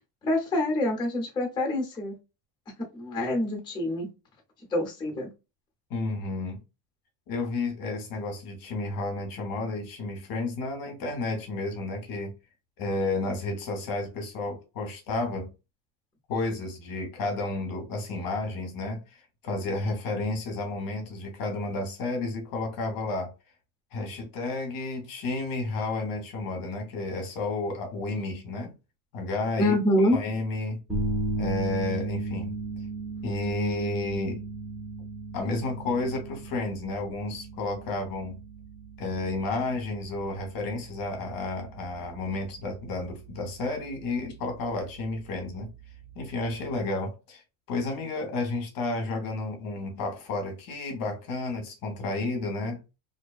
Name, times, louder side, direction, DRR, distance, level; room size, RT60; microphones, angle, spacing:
voice 1, 0.2-2.2 2.9-4.1 4.7-5.3 29.6-30.2, left 1 dB, 10° left, 0.7 m, -26 dB
voice 2, 5.9-6.6 7.3-12.3 12.8-15.5 16.3-23.3 23.9-28.7 29.1-30.8 31.4-32.5 33.2-34.4 35.3-38.4 39.0-45.7 46.2-47.4 47.7-52.8, left 2 dB, 45° left, 0.8 m, -31 dB
sound 1, 30.9-46.8, right 2 dB, 10° right, 0.3 m, -37 dB
2.6 x 2.1 x 2.2 m
cardioid pair, 150°, 49 cm